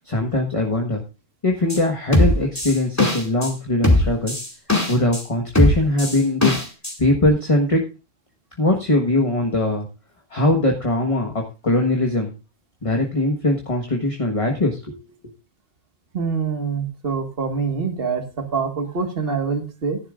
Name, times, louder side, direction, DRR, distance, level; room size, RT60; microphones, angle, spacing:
voice 1, 0.0-1.0 1.4-4.3 4.9-6.6 7.0-7.8 8.6-9.9 10.3-12.3 12.8-15.0, left 1 dB, 30° left, 1 dB, 1.5 m, -21 dB
sound 1, 1.7-1.8 2.1-3.5 3.8-5.2 5.5-6.9 7.3-7.4, left 2 dB, 15° left, 2.3 m, -19 dB
voice 2, 16.1-20.0, right 5 dB, 55° right, 5 dB, 1.9 m, -25 dB
16.0 x 11.0 x 2.5 m, 0.30 s
omnidirectional pair, 1.2 m